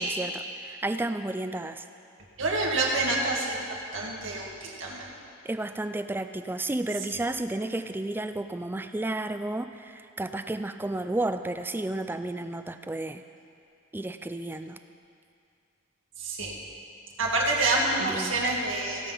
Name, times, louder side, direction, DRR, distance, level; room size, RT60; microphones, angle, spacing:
voice 1, 0.0-1.8 5.4-13.2 13.9-14.8 18.0-18.4, right 2 dB, 10° right, 9 dB, 0.3 m, -32 dB
voice 2, 2.4-5.1 16.2-16.5 17.2-19.1, right 2 dB, 75° right, -2 dB, 1.8 m, -27 dB
16.5 x 5.9 x 5.6 m, 2.5 s
head